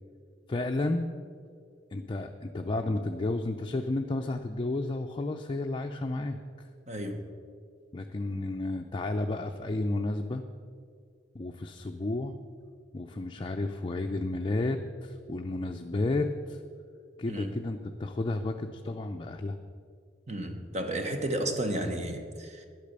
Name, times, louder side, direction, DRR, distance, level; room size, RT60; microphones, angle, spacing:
voice 1, 0.5-1.1 1.9-6.4 7.9-10.4 11.3-12.4 12.9-16.6 17.2-19.6, left 2 dB, 25° left, 4 dB, 0.5 m, -32 dB
voice 2, 6.9-7.2 17.3-17.5 20.3-22.7, right 1 dB, 40° right, 6 dB, 1.2 m, -32 dB
11.0 x 8.4 x 6.7 m, 2.2 s
head